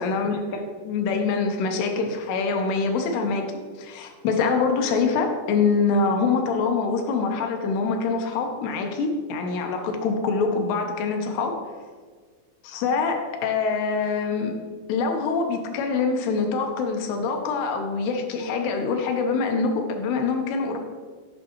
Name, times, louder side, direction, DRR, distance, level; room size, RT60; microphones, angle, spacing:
voice 1, 0.0-3.4 3.8-11.6 12.6-14.6 14.9-20.8, left 4 dB, 85° left, 4 dB, 2.7 m, -25 dB
8.8 x 5.5 x 2.9 m, 1.5 s
omnidirectional pair, 4.7 m